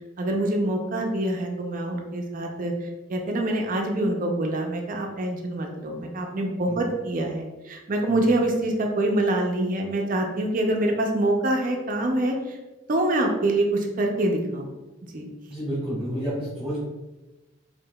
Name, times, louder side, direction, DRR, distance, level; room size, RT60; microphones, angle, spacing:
voice 1, 0.2-2.7 3.1-12.6 12.9-14.7 15.1-15.3, right 1 dB, 40° right, 2 dB, 0.4 m, -25 dB
voice 2, 15.5-16.8, equal, ahead, -9 dB, 1.2 m, -30 dB
5.3 x 2.5 x 2.2 m, 1.1 s
head